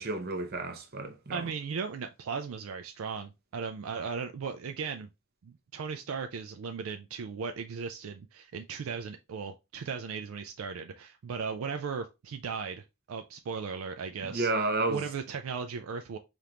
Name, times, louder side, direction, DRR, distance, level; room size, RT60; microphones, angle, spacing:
voice 1, 0.0-1.4 14.2-15.0, right 2 dB, 45° right, 0.7 m, -31 dB
voice 2, 1.3-5.1 5.4-14.5 14.9-16.2, right 5 dB, 65° right, 0.4 m, -37 dB
5.0 x 2.5 x 2.9 m
head